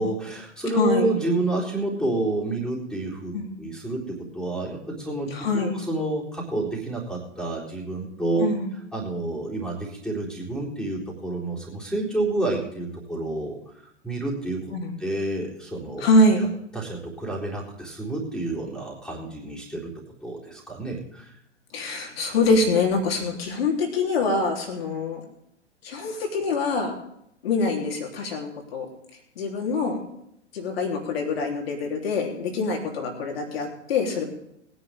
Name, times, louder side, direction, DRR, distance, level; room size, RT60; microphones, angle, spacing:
voice 1, 0.0-3.3 3.6-5.3 5.5-8.5 8.9-13.6 14.0-14.6 15.0-16.0 16.7-19.9 20.2-21.3, right 2 dB, ahead, -3 dB, 4.0 m, -29 dB
voice 2, 0.7-1.1 3.3-3.5 5.3-5.7 8.4-8.7 14.7-14.9 16.0-16.4 21.7-25.2 25.8-26.9 27.4-28.9 29.4-30.1 30.5-34.2, left 2 dB, 55° left, 1 dB, 3.7 m, -24 dB
21.0 x 10.0 x 3.7 m, 0.76 s
figure-of-eight pair, 105°, 36 cm